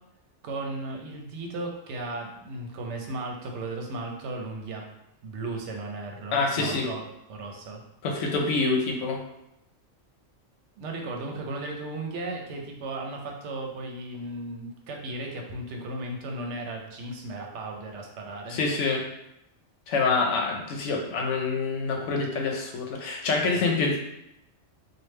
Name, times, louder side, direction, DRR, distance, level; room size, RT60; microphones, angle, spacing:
voice 1, 0.4-4.8 5.2-7.8 10.8-18.6 23.6-23.7, right 2 dB, 70° right, 1 dB, 0.9 m, -35 dB
voice 2, 6.3-6.9 8.0-9.2 18.5-19.0 19.9-24.0, left 4 dB, 75° left, 2 dB, 1.0 m, -26 dB
3.3 x 2.4 x 3.1 m, 0.85 s
omnidirectional pair, 1.3 m